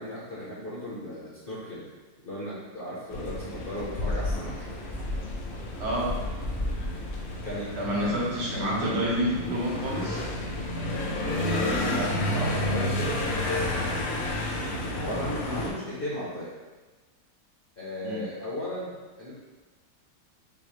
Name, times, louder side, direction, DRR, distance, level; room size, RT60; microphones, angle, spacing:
voice 1, 0.0-1.9 2.2-4.5 7.4-7.7 8.0-8.1 8.5-9.1 11.8-14.3 15.0-16.5 17.8-19.3, equal, 45° left, -8 dB, 0.8 m, -36 dB
sound 1, 3.1-15.7, left 1 dB, 85° left, 0.5 m, -30 dB
voice 2, 5.8-6.2 7.8-10.2 18.0-18.2, equal, 80° right, -5 dB, 1.6 m, -28 dB
5.4 x 2.0 x 3.0 m, 1.3 s
omnidirectional pair, 1.8 m